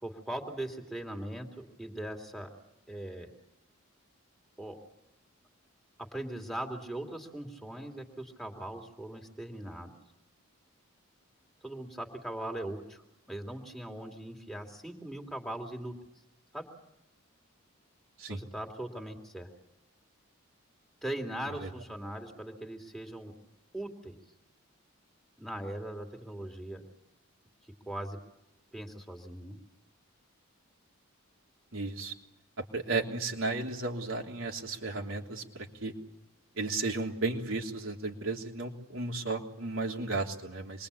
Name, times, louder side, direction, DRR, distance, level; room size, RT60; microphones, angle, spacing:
voice 1, 0.0-2.5 2.9-3.3 4.6-4.8 6.1-9.9 11.6-15.9 16.5-16.7 18.3-19.5 21.0-23.3 23.7-24.2 25.4-26.8 27.9-28.2 28.7-29.6, right 1 dB, ahead, 2 dB, 2.9 m, -40 dB
voice 2, 31.7-32.1 32.7-35.9 36.5-40.9, right 3 dB, 65° right, 1 dB, 3.3 m, -34 dB
27.5 x 22.5 x 8.5 m, 0.92 s
head